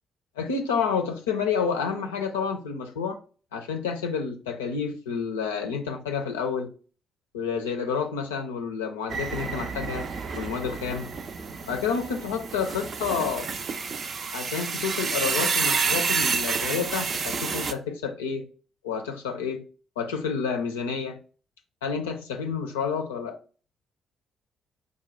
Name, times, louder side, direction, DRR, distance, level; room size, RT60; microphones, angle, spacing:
voice 1, 0.4-3.2 3.5-6.7 7.3-10.1 10.3-11.1 11.7-13.5 14.3-18.5 18.8-19.7 20.0-21.2 21.8-23.4, left 6 dB, 80° left, 0.5 m, -29 dB
sound 1, 9.1-17.7, right 5 dB, 45° right, 0.4 m, -29 dB
4.9 x 2.2 x 4.3 m
figure-of-eight pair, 40°, 0 cm